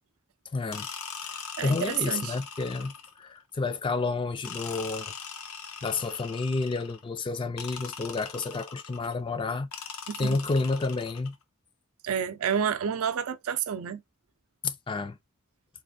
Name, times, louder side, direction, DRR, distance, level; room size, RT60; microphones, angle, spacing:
voice 1, 0.5-0.9 1.2-5.1 5.8-9.8 10.2-11.4 14.6-15.2, left 3 dB, 25° left, 0.3 m, -30 dB
sound 1, 0.7-3.3 4.4-7.0 7.6-9.2 9.7-11.4, left 6 dB, 80° left, 0.6 m, -41 dB
voice 2, 1.6-2.3 10.1-10.4 12.0-14.0, right 7 dB, 90° right, 0.5 m, -29 dB
3.9 x 2.4 x 2.6 m
head